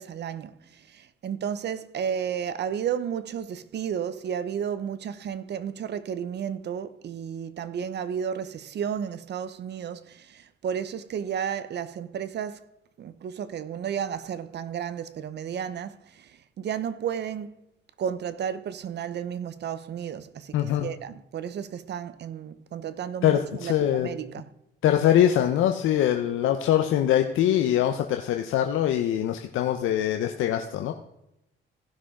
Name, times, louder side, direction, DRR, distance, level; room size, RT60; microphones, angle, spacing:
voice 1, 0.0-12.6 13.0-17.6 18.0-24.5, right 8 dB, 60° right, 0.8 m, -33 dB
voice 2, 20.5-20.9 23.2-24.1 24.8-30.9, left 11 dB, 85° left, 0.8 m, -23 dB
16.0 x 6.3 x 3.7 m
cardioid pair, 90°, 20 cm